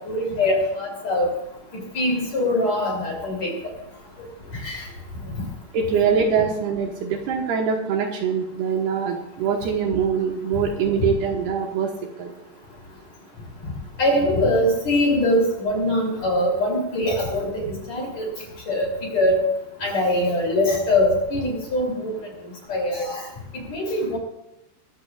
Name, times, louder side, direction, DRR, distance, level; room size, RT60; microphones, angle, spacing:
voice 1, 0.1-1.4 1.7-3.6 4.5-4.9 11.0-11.1 14.0-18.3 18.7-19.4 19.8-22.2 22.7-23.3 23.7-24.2, left 1 dB, 40° left, 0 dB, 3.8 m, -22 dB
voice 2, 5.7-11.9 12.2-12.3, right 6 dB, 70° right, 2 dB, 2.8 m, -23 dB
22.5 x 15.0 x 2.4 m, 0.89 s
omnidirectional pair, 5.3 m